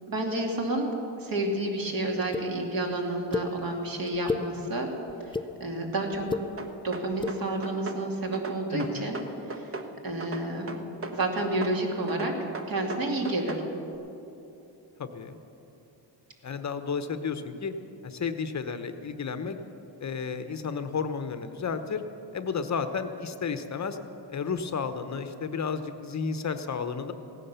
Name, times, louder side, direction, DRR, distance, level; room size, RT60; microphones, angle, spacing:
voice 1, 0.1-0.9 1.2-4.9 5.2-6.3 6.8-9.2 9.5-9.7 10.0-10.8 11.1-12.3 12.7-13.6, right 2 dB, 50° right, 1 dB, 2.5 m, -30 dB
sound 1, 2.3-2.4 3.3-3.5 4.1-4.4 5.1-5.5 6.1-6.4 7.1-7.3, left 4 dB, 10° left, 0.4 m, -30 dB
sound 2, 6.6-8.0 8.3-9.9 10.2-11.8 12.1-13.7, right 3 dB, 30° right, 1.0 m, -37 dB
voice 2, 8.7-9.1 15.0-15.4 16.4-17.7 18.0-19.6 20.0-22.0 22.3-24.0 24.3-27.1, left 5 dB, 40° left, 9 dB, 0.9 m, -32 dB
16.5 x 9.9 x 6.8 m, 2.9 s
cardioid pair, 100°, 45 cm